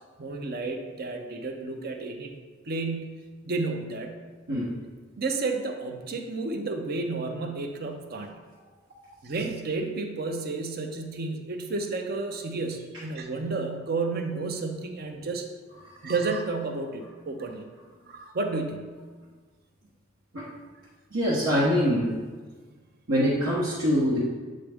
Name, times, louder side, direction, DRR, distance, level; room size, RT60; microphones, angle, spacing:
voice 1, 0.2-2.3 2.7-4.1 5.2-8.3 9.2-15.5 16.0-17.7 18.1-18.9, right 3 dB, 50° right, 5 dB, 0.6 m, -31 dB
voice 2, 21.1-22.1 23.1-24.2, equal, 70° right, -8 dB, 1.1 m, -24 dB
7.5 x 3.9 x 3.4 m, 1.4 s
head